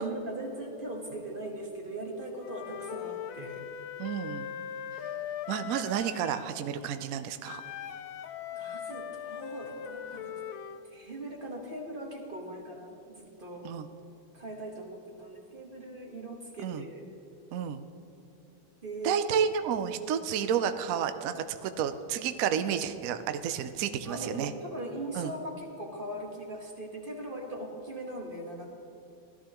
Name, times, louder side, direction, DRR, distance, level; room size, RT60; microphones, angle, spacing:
voice 1, 0.0-3.7 8.5-10.4 10.8-13.7 14.3-17.1 18.8-19.3 24.0-28.7, right 1 dB, 30° right, 0 dB, 1.3 m, -40 dB
Wind instrument woodwind instrument, 2.4-6.5 7.4-10.8, left 9 dB, 70° left, 0.9 m, -40 dB
voice 2, 4.0-4.5 5.5-7.6 13.6-13.9 16.6-16.8 17.5-17.8 19.0-24.5 25.1-25.3, right 8 dB, 75° right, 9 dB, 0.8 m, -31 dB
17.0 x 12.5 x 3.0 m, 2.8 s
omnidirectional pair, 2.1 m